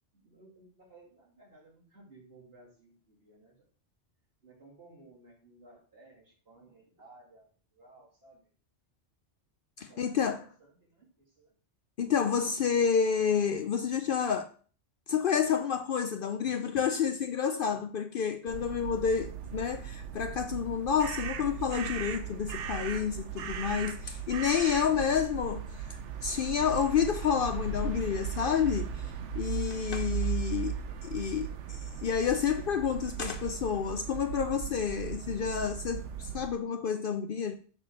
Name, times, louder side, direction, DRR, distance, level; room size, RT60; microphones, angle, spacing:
voice 1, 0.1-3.7 4.4-8.4 9.8-11.5, right 2 dB, 55° right, 3.1 m, -57 dB
voice 2, 9.8-10.4 12.0-14.5 15.1-29.0 29.3-37.5, left 7 dB, 60° left, 0.6 m, -29 dB
sound 1, 18.5-36.5, right 7 dB, 85° right, 1.0 m, -37 dB
6.4 x 3.8 x 6.3 m
omnidirectional pair, 1.2 m